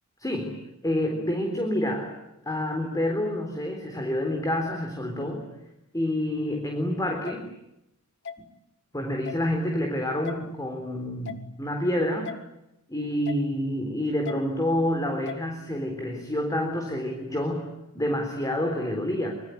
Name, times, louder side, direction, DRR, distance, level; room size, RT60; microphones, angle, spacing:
voice 1, 0.2-2.2 2.5-5.5 5.9-7.5 8.9-12.3 12.9-19.3, left 1 dB, 15° left, 4 dB, 3.8 m, -28 dB
sound 1, 7.2-7.4 8.2-8.4 9.2-9.4 10.2-10.4 11.2-11.4 12.2-12.4 13.2-13.4 14.2-14.4 15.3-15.4, left 7 dB, 55° left, 1.9 m, -37 dB
25.5 x 24.0 x 9.6 m, 0.88 s
head